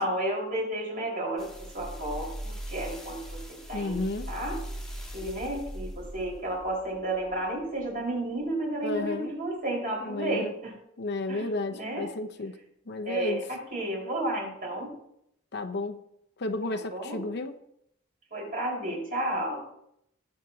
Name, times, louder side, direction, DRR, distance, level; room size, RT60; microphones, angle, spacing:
voice 1, 0.0-4.6 5.1-10.7 11.3-12.1 13.0-14.9 16.7-17.3 18.3-19.6, right 1 dB, 45° right, 4.8 m, -32 dB
sound 1, 1.4-7.9 8.4-8.5, right 1 dB, 5° left, 1.8 m, -40 dB
voice 2, 3.7-4.3 8.8-9.3 10.0-10.5 11.0-12.6 12.9-13.4 15.5-16.0 16.4-17.5, left 2 dB, 55° left, 0.8 m, -32 dB
19.5 x 8.2 x 2.8 m
head